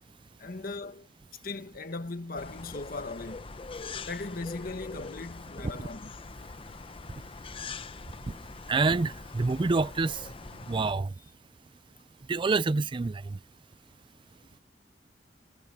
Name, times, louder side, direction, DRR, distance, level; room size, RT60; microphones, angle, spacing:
voice 1, 0.4-3.6 4.1-6.1, left 3 dB, 55° left, 1.3 m, -38 dB
sound 1, 2.4-10.9, left 4 dB, 30° left, 0.7 m, -43 dB
voice 2, 8.7-10.2 10.7-11.1 12.3-13.4, right 3 dB, 30° right, 0.4 m, -27 dB
head